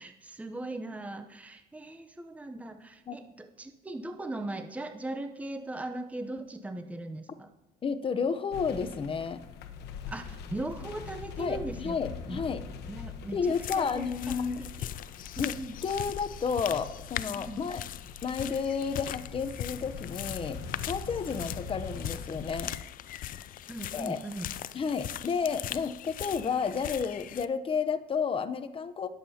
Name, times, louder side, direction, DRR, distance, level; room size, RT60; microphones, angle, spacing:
voice 1, 0.0-7.5 10.1-12.0 12.3-12.4 12.9-14.9 15.4-15.8 17.4-17.6 23.7-24.5, right 2 dB, 10° right, 6 dB, 0.7 m, -39 dB
voice 2, 7.8-9.4 11.4-12.6 13.3-14.6 15.4-17.8 18.2-22.7 23.9-24.2 24.7-29.1, left 6 dB, 30° left, 11 dB, 0.8 m, -31 dB
sound 1, 8.5-22.7, left 6 dB, 80° left, 1.1 m, -43 dB
sound 2, 13.4-27.5, left 12 dB, 55° left, 0.4 m, -40 dB
20.0 x 7.5 x 2.8 m, 0.95 s
cardioid pair, 110°, 17 cm